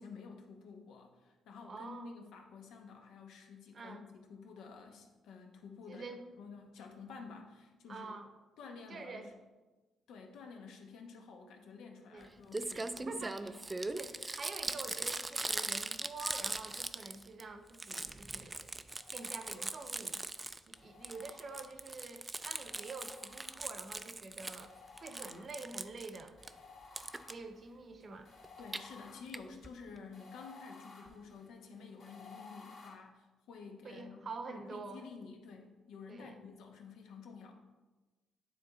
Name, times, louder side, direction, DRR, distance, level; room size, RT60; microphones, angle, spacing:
voice 1, 0.0-6.1 6.4-8.1 8.6-9.2 10.1-14.1 28.6-37.5, left 5 dB, 85° left, 3 dB, 0.9 m, -51 dB
voice 2, 1.7-2.1 3.7-4.1 5.9-6.2 7.9-8.3 8.9-9.3 12.1-12.3 12.7-13.6 14.0-18.7 19.1-20.2 20.7-24.7 25.0-26.4 27.3-28.3 33.8-35.1 36.1-36.4, right 3 dB, 45° right, 7 dB, 0.8 m, -47 dB
Crumpling crinkling, 12.2-12.3 12.5-17.4 17.7-20.7 21.0-24.7 25.0-26.5 27.0-27.3 28.4-28.8 29.3-29.4 29.6-29.7 30.0-30.1, right 2 dB, 20° right, 0.3 m, -40 dB
sound 1, 18.9-20.1 20.7-22.1 22.6-24.0 24.5-25.8 26.4-32.9, left 4 dB, 55° left, 1.7 m, -56 dB
9.3 x 3.3 x 4.0 m, 1.2 s
cardioid pair, 90°, 0 cm